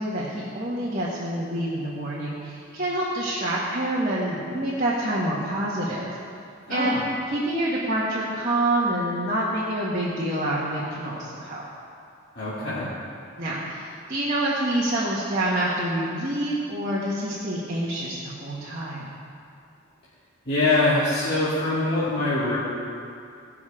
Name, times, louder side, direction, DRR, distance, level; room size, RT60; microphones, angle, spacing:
voice 1, 0.0-6.2 6.7-6.9 7.3-11.7 13.4-19.1, right 1 dB, 35° right, -7 dB, 1.5 m, -27 dB
voice 2, 6.7-7.0 12.3-12.9 20.5-22.6, left 2 dB, 45° left, -12 dB, 2.3 m, -23 dB
18.0 x 6.3 x 5.0 m, 2.5 s
head